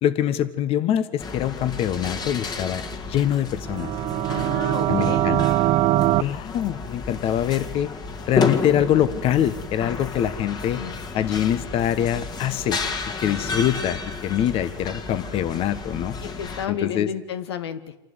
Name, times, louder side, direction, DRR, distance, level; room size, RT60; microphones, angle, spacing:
voice 1, 0.0-2.8 3.1-3.9 4.9-5.5 6.2-7.9 8.3-10.8 11.1-12.8 13.1-14.0 14.2-16.2 16.7-17.1, left 10 dB, 45° left, 14 dB, 1.3 m, -24 dB
sound 1, 1.2-16.7, left 4 dB, 30° left, 2.1 m, -32 dB
sound 2, 3.7-6.2, right 15 dB, 45° right, 0.6 m, -21 dB
voice 2, 4.3-5.4 10.7-10.9 16.2-18.0, left 8 dB, 85° left, 11 dB, 1.2 m, -32 dB
27.5 x 12.0 x 8.0 m, 1.0 s
hypercardioid pair, 95°, 13 cm